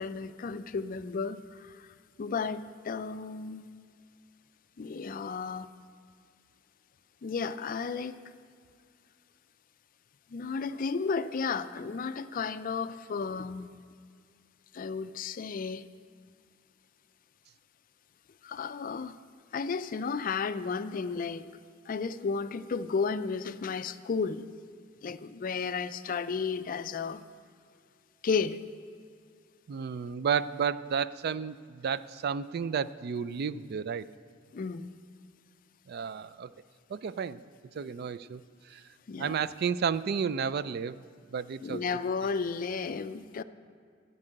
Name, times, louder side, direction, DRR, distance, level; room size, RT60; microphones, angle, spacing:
voice 1, 0.0-1.9 2.2-3.7 4.8-5.7 7.2-8.2 10.3-13.7 14.7-15.9 18.4-19.2 19.5-21.5 21.9-24.5 25.0-27.2 28.2-28.6 34.5-34.9 39.1-39.4 41.6-43.4, left 5 dB, 45° left, 0.4 m, -33 dB
voice 2, 29.7-34.1 35.9-36.5 36.9-37.4 37.7-38.4 38.7-38.8 39.2-41.0 41.3-41.9, right 6 dB, 55° right, 0.3 m, -32 dB
14.5 x 5.4 x 8.8 m
head